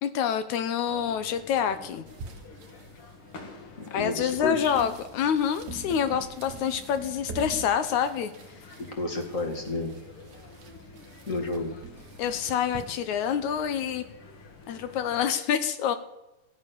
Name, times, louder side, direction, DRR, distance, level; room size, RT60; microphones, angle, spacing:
voice 1, 0.0-2.0 3.9-8.3 12.2-14.0 14.7-16.0, left 8 dB, 75° left, 11 dB, 2.0 m, -27 dB
sound 1, 0.9-15.3, left 3 dB, 45° left, 2.5 m, -49 dB
sound 2, 2.1-12.8, right 3 dB, 60° right, 2.7 m, -45 dB
voice 2, 3.9-4.7 8.8-9.9 11.3-11.7, left 2 dB, 30° left, 2 dB, 2.0 m, -30 dB
15.0 x 11.0 x 6.9 m, 0.98 s
omnidirectional pair, 3.8 m